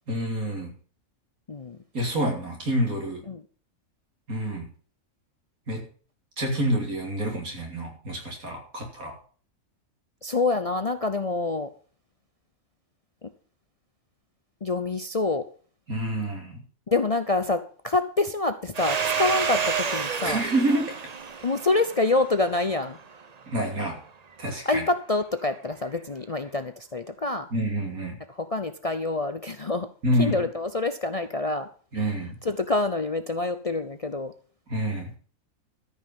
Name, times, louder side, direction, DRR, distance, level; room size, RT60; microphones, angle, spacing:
voice 1, 0.1-0.7 1.9-3.2 4.3-4.7 5.7-5.9 6.4-9.2 15.9-16.6 20.2-21.0 23.5-24.0 24.4-24.8 27.5-28.2 30.0-30.4 31.9-32.4 34.7-35.1, right 1 dB, 85° right, 1 dB, 3.5 m, -27 dB
voice 2, 1.5-1.8 3.3-3.4 10.2-11.7 13.2-13.3 14.6-15.5 16.9-20.4 21.4-23.0 24.6-27.5 28.3-29.9 30.2-31.7 31.9-34.3, left 3 dB, 40° left, 9 dB, 0.5 m, -26 dB
Domestic sounds home sounds, 18.7-23.2, right 6 dB, 35° right, 0.8 m, -30 dB
13.5 x 5.6 x 7.4 m, 0.43 s
omnidirectional pair, 1.4 m